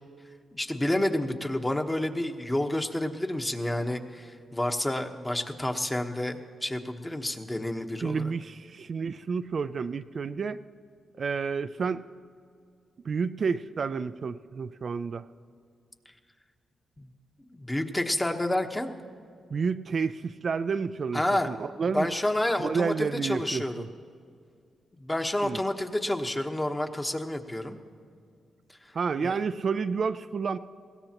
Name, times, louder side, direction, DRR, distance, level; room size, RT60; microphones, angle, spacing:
voice 1, 0.5-8.3 17.0-17.1 17.5-18.9 21.1-21.5 21.9-23.8 25.0-27.8 29.2-29.4, left 1 dB, 15° left, 5 dB, 1.1 m, -29 dB
voice 2, 8.0-10.6 11.2-12.0 13.0-15.2 19.5-21.2 21.5-22.1 22.6-23.9 25.4-25.6 28.9-30.6, right 5 dB, 55° right, 11 dB, 0.4 m, -30 dB
21.5 x 16.5 x 3.0 m, 2.3 s
cardioid pair, 65°, 0 cm